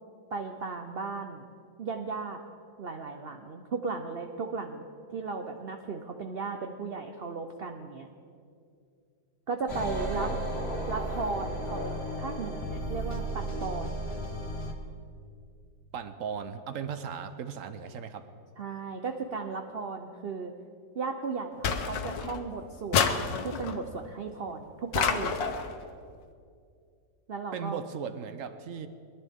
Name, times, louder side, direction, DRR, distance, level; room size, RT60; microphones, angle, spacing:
voice 1, 0.3-1.5 1.8-2.4 2.8-8.1 9.5-10.3 10.9-14.1 18.6-20.5 20.9-23.0 23.4-25.4 27.3-27.8, right 4 dB, 85° right, 5 dB, 0.5 m, -35 dB
sound 1, 9.7-14.7, right 1 dB, 35° left, 1.5 m, -34 dB
voice 2, 10.0-10.4 15.9-18.3 27.5-28.9, right 7 dB, 65° right, 10 dB, 0.8 m, -37 dB
sound 2, 21.6-22.4 22.9-23.8 24.9-25.7, left 6 dB, 80° left, 1.5 m, -28 dB
22.0 x 11.0 x 3.6 m, 2.3 s
omnidirectional pair, 2.0 m